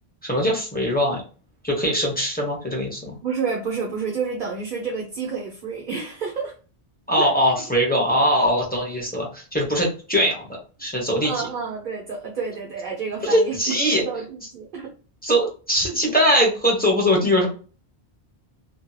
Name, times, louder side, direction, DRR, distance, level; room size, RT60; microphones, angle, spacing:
voice 1, 0.2-1.2 1.6-3.2 7.1-10.5 10.8-11.5 13.2-14.0 15.2-17.5, equal, 10° left, -4 dB, 0.9 m, -21 dB
voice 2, 3.2-6.5 7.2-7.4 11.2-14.2 14.5-14.9, right 5 dB, 55° right, -1 dB, 0.8 m, -29 dB
2.7 x 2.7 x 2.3 m, 0.36 s
omnidirectional pair, 1.0 m